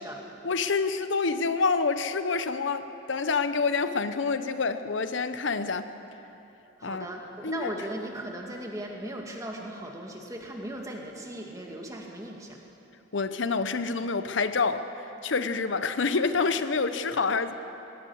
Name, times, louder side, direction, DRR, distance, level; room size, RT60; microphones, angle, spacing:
voice 1, 0.4-5.9 6.8-7.1 7.4-7.7 13.1-14.9 15.2-17.5, left 4 dB, 75° left, 11 dB, 0.8 m, -27 dB
voice 2, 6.8-12.6 17.2-17.3, right 1 dB, 15° right, 0 dB, 2.2 m, -38 dB
20.5 x 18.5 x 7.1 m, 2.9 s
head